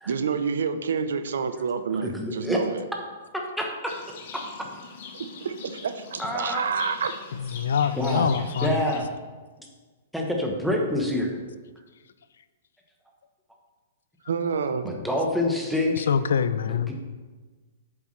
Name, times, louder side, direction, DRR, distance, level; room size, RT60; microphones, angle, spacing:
voice 1, 0.1-2.8 5.4-7.2 14.3-15.0, right 6 dB, 90° right, 10 dB, 0.6 m, -28 dB
voice 2, 2.0-2.6 3.3-3.9 4.3-4.4 6.2-6.6 8.0-8.3 8.6-9.1 10.1-11.4 14.8-16.1 16.7-16.9, left 1 dB, ahead, 0 dB, 0.9 m, -27 dB
Livestock farm animals working animals, 3.9-9.0, left 5 dB, 50° left, 1.1 m, -42 dB
voice 3, 7.3-8.8 16.0-16.9, left 7 dB, 85° left, 14 dB, 0.5 m, -25 dB
8.0 x 7.2 x 3.2 m, 1.3 s
hypercardioid pair, 165°, 0 cm